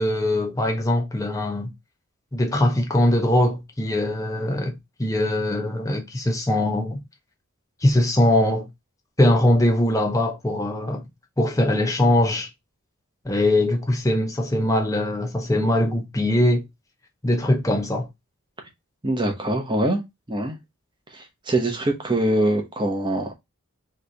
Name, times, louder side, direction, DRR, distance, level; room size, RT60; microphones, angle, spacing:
voice 1, 0.0-1.7 2.3-7.0 7.8-8.7 9.2-11.0 11.4-12.5 13.2-16.7 17.2-18.1, left 1 dB, 15° left, 0.8 m, -21 dB
voice 2, 19.0-20.0 20.3-20.6 21.1-23.3, right 1 dB, 20° right, 0.9 m, -23 dB
3.3 x 3.2 x 3.9 m
head